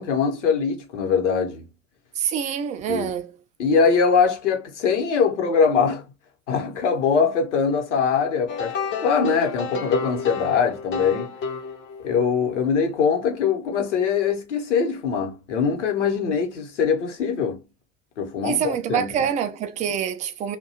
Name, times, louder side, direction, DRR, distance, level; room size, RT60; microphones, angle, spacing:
voice 1, 0.0-1.6 2.9-3.1 3.6-6.0 6.5-8.7 9.0-11.3 12.0-17.6 18.2-19.3, left 6 dB, 70° left, 0.9 m, -22 dB
voice 2, 2.2-3.3 18.4-20.6, right 8 dB, 20° right, 0.3 m, -26 dB
sound 1, 8.5-12.3, left 5 dB, 30° left, 0.6 m, -30 dB
2.6 x 2.2 x 2.7 m
figure-of-eight pair, 70°, 37 cm